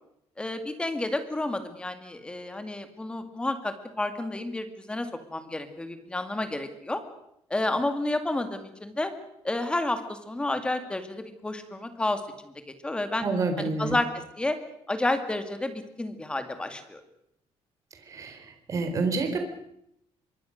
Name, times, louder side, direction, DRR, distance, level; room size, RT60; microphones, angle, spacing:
voice 1, 0.4-7.0 7.5-9.1 9.4-12.2 12.8-13.3 13.6-14.1 14.4-14.6 14.9-17.0, left 2 dB, 10° left, 8 dB, 2.1 m, -30 dB
voice 2, 13.2-14.0 18.1-18.4 18.7-19.4, right 3 dB, 30° right, 6 dB, 3.9 m, -28 dB
25.0 x 23.5 x 6.5 m, 0.76 s
cardioid pair, 180°, 11 cm